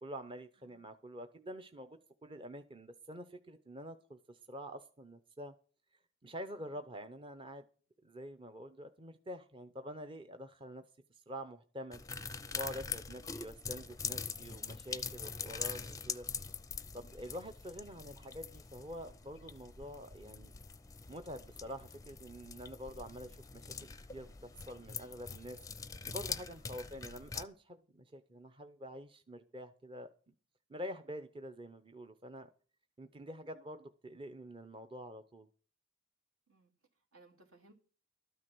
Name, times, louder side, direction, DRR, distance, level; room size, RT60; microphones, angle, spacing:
voice 1, 0.0-5.5 6.2-7.6 8.0-10.8 11.1-12.0 12.5-16.3 16.9-20.5 21.1-25.6 26.0-30.1 30.7-32.5 33.0-35.5, equal, 25° right, 0.7 m, -47 dB
sound 1, 11.9-27.4, left 5 dB, 15° left, 0.5 m, -44 dB
voice 2, 36.5-37.7, right 2 dB, 75° right, 2.7 m, -65 dB
13.0 x 9.6 x 6.1 m
head